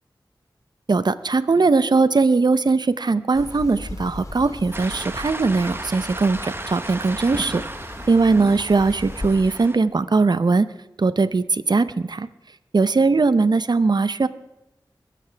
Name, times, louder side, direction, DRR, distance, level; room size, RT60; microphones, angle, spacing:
voice 1, 0.9-7.6 8.1-10.7 11.0-12.3 12.7-14.3, right 4 dB, 60° right, 14 dB, 0.7 m, -20 dB
sound 1, 3.3-9.3, left 2 dB, 40° left, 2.0 m, -38 dB
sound 2, 4.7-9.8, right 1 dB, 30° right, 1.2 m, -34 dB
22.0 x 13.5 x 3.4 m, 0.93 s
wide cardioid pair, 45°, 8 cm